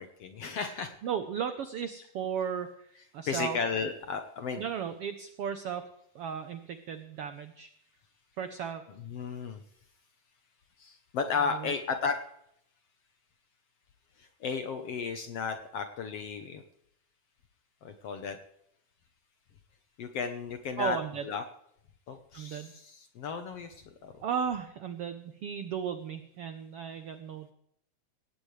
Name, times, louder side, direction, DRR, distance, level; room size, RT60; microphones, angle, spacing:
voice 1, 0.0-0.9 3.3-4.6 9.0-9.6 10.8-12.2 14.2-16.6 17.8-18.4 20.0-21.0 21.2-21.4 22.1-24.2, left 5 dB, 65° left, 7 dB, 1.6 m, -34 dB
voice 2, 1.0-3.6 4.6-5.9 6.1-7.7 8.4-8.9 11.5-11.7 20.8-21.3 22.3-22.7 24.2-27.5, right 7 dB, 85° right, 9 dB, 1.3 m, -35 dB
18.0 x 16.5 x 3.3 m, 0.72 s
omnidirectional pair, 3.9 m